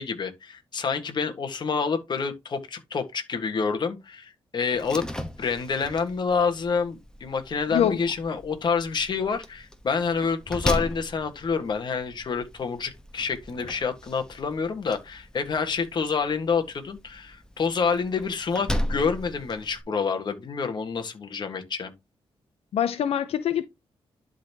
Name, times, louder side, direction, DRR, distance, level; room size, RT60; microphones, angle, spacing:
voice 1, 0.0-5.1 5.4-21.9, left 5 dB, 50° left, 1.6 m, -28 dB
Slam, 4.7-19.8, left 1 dB, 5° left, 1.1 m, -37 dB
voice 2, 22.7-23.6, left 9 dB, 85° left, 0.7 m, -24 dB
11.5 x 4.0 x 2.9 m
wide cardioid pair, 130°, 10 cm